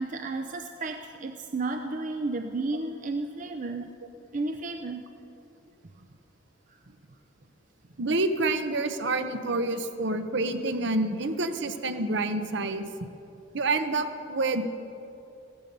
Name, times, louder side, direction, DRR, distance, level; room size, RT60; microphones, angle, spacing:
voice 1, 0.0-3.9 4.3-5.1, right 3 dB, 45° right, 6 dB, 0.6 m, -32 dB
voice 2, 8.0-12.8 13.5-14.6, right 2 dB, 65° right, 9 dB, 0.9 m, -28 dB
15.0 x 14.0 x 5.3 m, 2.7 s
head